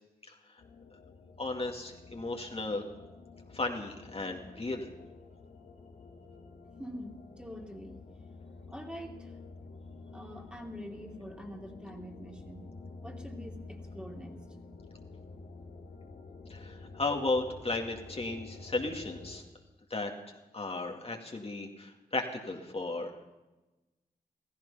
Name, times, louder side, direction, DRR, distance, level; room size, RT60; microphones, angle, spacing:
sound 1, 0.6-19.4, left 3 dB, 75° left, 2.6 m, -49 dB
voice 1, 1.4-2.8 3.5-4.9 16.5-19.4 19.9-20.1 20.5-23.1, left 2 dB, 35° left, 2 dB, 2.3 m, -34 dB
voice 2, 6.8-8.0 8.7-9.3 10.1-12.7 13.0-14.4, equal, 5° right, 2 dB, 2.7 m, -45 dB
15.0 x 15.0 x 5.7 m, 1.1 s
supercardioid pair, 40°, 16 cm